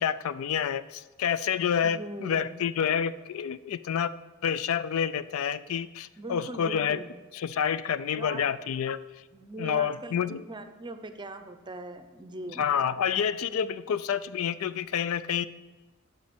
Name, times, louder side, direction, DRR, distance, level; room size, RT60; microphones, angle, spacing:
voice 1, 0.0-4.1 4.4-7.0 7.3-9.0 9.6-10.4 12.6-15.4, left 8 dB, 70° left, 16 dB, 0.4 m, -28 dB
voice 2, 1.8-2.6 6.2-7.1 8.1-8.4 9.3-12.7, right 1 dB, 20° right, 8 dB, 0.7 m, -40 dB
12.5 x 5.3 x 6.0 m, 1.2 s
head